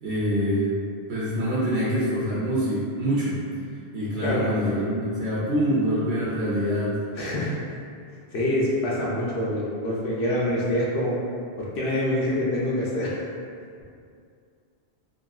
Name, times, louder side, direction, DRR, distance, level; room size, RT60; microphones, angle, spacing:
voice 1, 0.0-0.7 1.1-3.4 3.9-7.0, equal, 90° right, -9 dB, 0.9 m, -25 dB
voice 2, 7.2-7.5 8.3-11.2 11.6-13.2, left 1 dB, 75° left, -6 dB, 0.8 m, -25 dB
2.9 x 2.5 x 2.3 m, 2.4 s
omnidirectional pair, 1.1 m